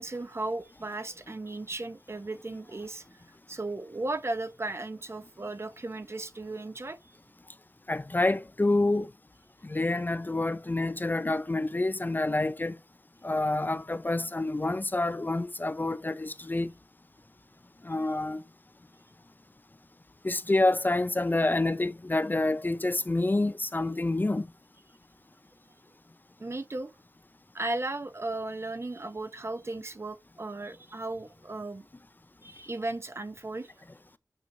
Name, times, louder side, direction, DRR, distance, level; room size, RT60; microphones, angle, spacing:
voice 1, 0.0-3.2 3.5-7.1 26.4-26.9 27.5-31.9 32.4-33.7, right 2 dB, 40° right, 0.8 m, -36 dB
voice 2, 7.9-9.1 9.6-12.8 13.2-16.7 17.8-18.4 20.2-24.5, left 2 dB, 30° left, 0.5 m, -27 dB
9.0 x 4.4 x 2.7 m
cardioid pair, 50°, 7 cm